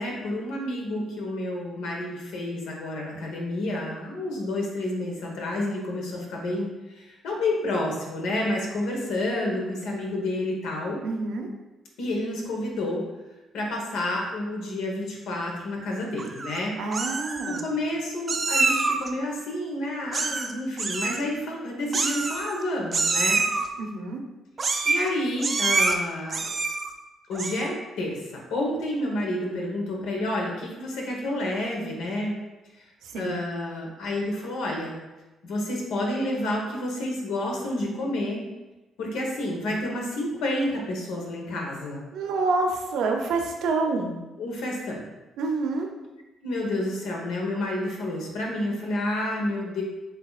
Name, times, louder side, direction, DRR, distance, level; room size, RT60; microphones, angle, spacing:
voice 1, 0.0-6.7 6.9-11.0 12.0-13.0 13.5-16.8 17.4-23.4 24.8-26.6 27.3-32.3 33.1-35.0 35.4-38.4 39.0-42.0 44.4-45.0 46.4-49.8, left 1 dB, 90° left, -1 dB, 1.2 m, -29 dB
voice 2, 11.0-11.5 16.8-17.7 23.8-24.2 33.0-33.4 42.1-44.2 45.4-45.9, right 3 dB, 85° right, 3 dB, 0.6 m, -27 dB
Meow, 16.2-16.6 16.9-17.6 18.3-19.1 20.1-20.5 20.8-21.2 21.9-22.6 22.9-23.7 24.6-25.1 25.4-25.9 26.3-26.9 27.3-27.7, right 3 dB, 40° right, 0.5 m, -26 dB
7.8 x 2.8 x 2.4 m, 1.1 s
cardioid pair, 90°, 0 cm